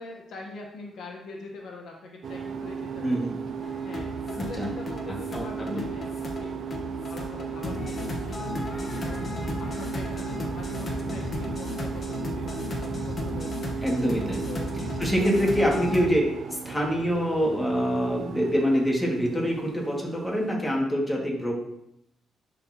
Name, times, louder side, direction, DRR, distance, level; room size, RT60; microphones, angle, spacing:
voice 1, 0.0-3.3 3.6-9.2 9.6-13.8 14.5-15.1 15.4-15.5, left 3 dB, 65° left, 0 dB, 1.2 m, -43 dB
sound 1, 2.2-20.5, right 6 dB, 60° right, 0.6 m, -36 dB
voice 2, 3.0-3.4 4.4-4.7 5.3-5.8 13.8-14.4 15.0-16.2 16.5-21.5, equal, 10° left, -2 dB, 2.2 m, -25 dB
sound 2, 3.6-16.1, left 2 dB, 40° left, 1.2 m, -34 dB
10.5 x 4.2 x 3.0 m, 0.78 s
cardioid pair, 90°, 0 cm